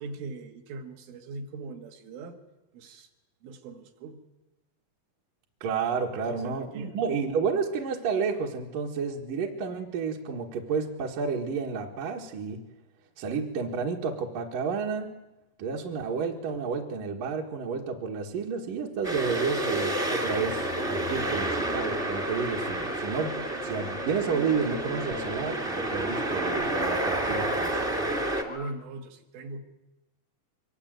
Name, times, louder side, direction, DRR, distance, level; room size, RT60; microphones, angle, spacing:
voice 1, 0.0-2.4 2.7-3.1 3.4-4.2 6.1-6.9 28.5-29.6, right 3 dB, 75° right, 4 dB, 4.4 m, -40 dB
voice 2, 5.6-12.6 13.2-15.1 15.6-23.4 23.6-28.1, right 5 dB, 60° right, -1 dB, 2.5 m, -31 dB
sound 1, 19.0-28.4, right 1 dB, 35° right, 0.8 m, -30 dB
sound 2, 20.8-28.7, left 1 dB, 40° left, 0.4 m, -46 dB
24.0 x 22.0 x 9.2 m, 0.99 s
omnidirectional pair, 5.7 m